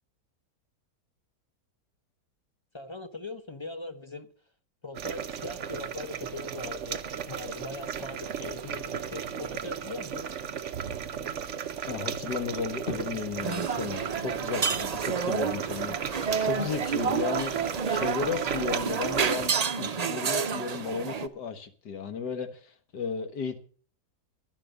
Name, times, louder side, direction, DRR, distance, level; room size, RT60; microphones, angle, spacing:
voice 1, 2.7-4.3 4.8-7.0 7.3-10.3, left 3 dB, 30° left, 0.5 m, -40 dB
sound 1, 4.9-19.5, right 8 dB, 55° right, 1.0 m, -35 dB
voice 2, 11.9-23.6, left 5 dB, 80° left, 2.0 m, -34 dB
sound 2, 12.3-18.2, left 3 dB, 45° left, 2.6 m, -49 dB
sound 3, 13.4-21.3, right 6 dB, 85° right, 0.3 m, -30 dB
11.5 x 11.0 x 6.7 m
omnidirectional pair, 1.7 m